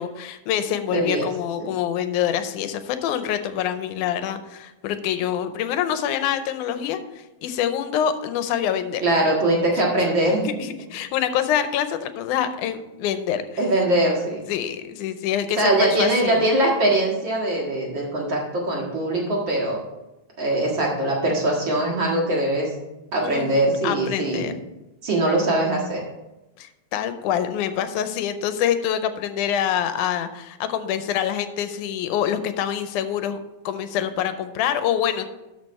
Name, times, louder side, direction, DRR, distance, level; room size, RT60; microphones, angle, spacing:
voice 1, 0.0-9.0 9.8-9.9 10.5-13.6 14.5-16.5 23.2-24.5 26.6-33.4 33.7-35.3, left 9 dB, 90° left, 10 dB, 2.2 m, -26 dB
voice 2, 0.9-1.3 1.6-1.7 9.0-10.5 13.6-14.5 15.6-19.8 20.4-22.7 23.1-24.5 25.0-26.0, right 1 dB, 40° right, -3 dB, 2.3 m, -22 dB
12.5 x 5.0 x 4.2 m, 1.0 s
omnidirectional pair, 3.5 m